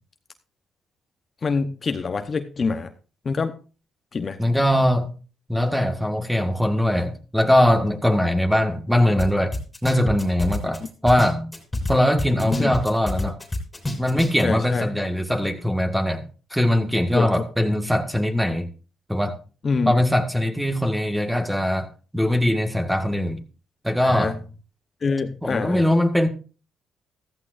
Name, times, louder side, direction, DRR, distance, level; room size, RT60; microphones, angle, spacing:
voice 1, 1.4-2.9 3.2-3.5 4.1-4.4 12.3-12.7 14.4-14.9 17.1-17.3 19.6-19.9 24.0-24.3 25.0-25.9, left 4 dB, 40° left, 0.9 m, -25 dB
voice 2, 4.4-5.1 5.5-11.5 11.9-13.4 13.8-16.2 16.5-18.7 19.1-19.4 19.9-23.4 23.8-24.4 25.4-26.3, left 1 dB, ahead, 1.7 m, -21 dB
sound 1, 9.2-9.3 9.5-11.9 12.2-14.4, left 1 dB, 15° left, 3.4 m, -27 dB
14.5 x 14.0 x 2.6 m
cardioid pair, 90°, 0 cm